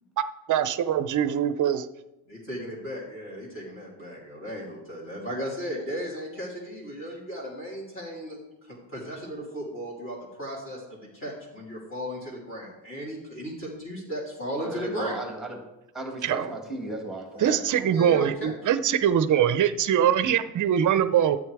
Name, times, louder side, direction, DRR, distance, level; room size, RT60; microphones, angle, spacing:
voice 1, 0.2-1.9 16.2-16.4 17.4-21.4, right 9 dB, 45° right, 13 dB, 0.6 m, -23 dB
voice 2, 2.3-15.2 17.3-18.5, equal, 30° left, -5 dB, 3.0 m, -36 dB
voice 3, 14.6-15.6 15.9-18.0, right 1 dB, ahead, 2 dB, 1.9 m, -36 dB
12.5 x 8.3 x 4.7 m, 0.97 s
cardioid pair, 170°, 45 cm